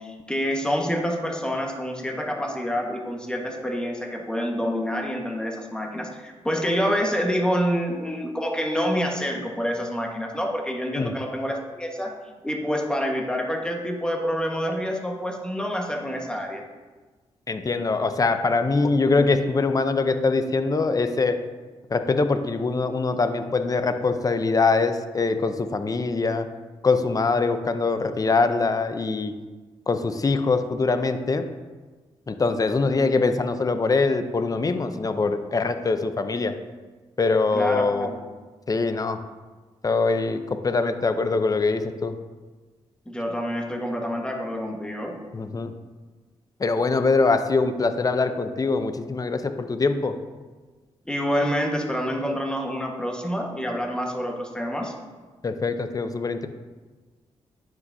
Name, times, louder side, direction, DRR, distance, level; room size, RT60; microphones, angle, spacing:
voice 1, 0.0-12.1 12.4-16.6 37.5-38.2 43.0-45.1 51.1-54.9, equal, 5° left, 1 dB, 1.4 m, -27 dB
voice 2, 17.5-21.4 21.9-26.5 26.8-29.3 29.9-31.5 32.3-36.5 37.2-38.1 38.7-39.2 39.8-42.1 45.3-45.7 46.6-50.1 55.4-56.5, left 3 dB, 30° left, 9 dB, 0.6 m, -23 dB
9.5 x 6.0 x 2.7 m, 1.3 s
cardioid pair, 60°, 12 cm